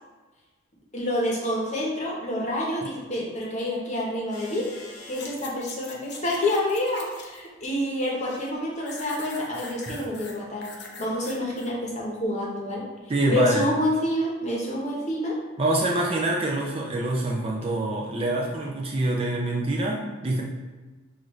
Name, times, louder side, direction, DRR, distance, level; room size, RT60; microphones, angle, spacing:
voice 1, 0.9-4.7 5.1-12.8 13.3-15.4, left 1 dB, 35° left, -3 dB, 0.9 m, -28 dB
sound 1, 4.3-5.4 6.8-6.9 8.2-8.5 9.4-9.5, left 2 dB, 80° left, 0.9 m, -44 dB
sound 2, 5.1-7.5 7.8-8.5 8.9-11.7 12.2-12.3, left 3 dB, 50° left, 0.6 m, -43 dB
voice 2, 13.1-13.7 15.6-20.4, right 1 dB, 25° right, -2 dB, 0.4 m, -25 dB
6.1 x 2.5 x 3.1 m, 1.3 s
head